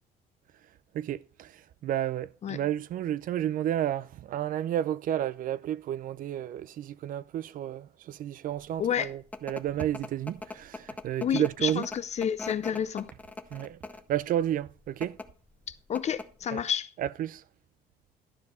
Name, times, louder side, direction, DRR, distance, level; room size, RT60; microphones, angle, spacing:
voice 1, 0.9-1.5 1.8-11.8 13.5-13.8 14.1-15.2 16.5-16.6 17.0-17.4, right 11 dB, 55° right, 0.4 m, -31 dB
sound 1, 8.7-14.2 14.9-15.3 15.6-15.7 16.0-16.4, left 2 dB, 10° left, 0.8 m, -41 dB
voice 2, 8.8-9.1 11.2-13.1 15.9-16.9, left 8 dB, 40° left, 0.6 m, -30 dB
12.0 x 4.7 x 5.5 m
cardioid pair, 110°, 17 cm